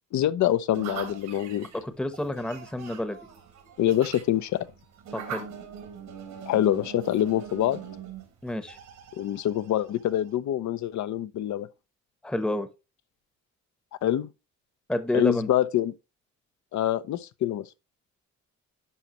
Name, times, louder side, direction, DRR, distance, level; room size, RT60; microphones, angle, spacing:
voice 1, 0.1-1.7 3.8-4.7 6.5-7.8 9.2-11.7 14.0-14.3 15.1-15.9 16.7-17.6, left 12 dB, 70° left, 0.7 m, -25 dB
sound 1, 0.7-10.3, right 7 dB, 85° right, 3.3 m, -42 dB
voice 2, 1.7-3.2 5.1-5.5 8.4-8.8 12.2-12.7 14.9-15.5, left 1 dB, 5° left, 0.9 m, -29 dB
11.0 x 5.1 x 3.0 m
cardioid pair, 90°, 30 cm